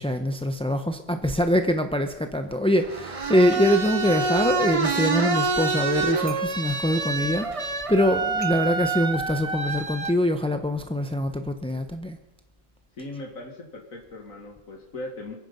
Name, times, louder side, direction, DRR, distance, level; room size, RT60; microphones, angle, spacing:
voice 1, 0.0-12.2, left 1 dB, 5° left, 6 dB, 0.4 m, -24 dB
sound 1, 2.8-10.1, right 4 dB, 30° right, 0.9 m, -27 dB
voice 2, 13.0-15.4, left 2 dB, 80° left, 0 dB, 2.3 m, -38 dB
27.5 x 9.4 x 5.4 m, 1.0 s
omnidirectional pair, 1.4 m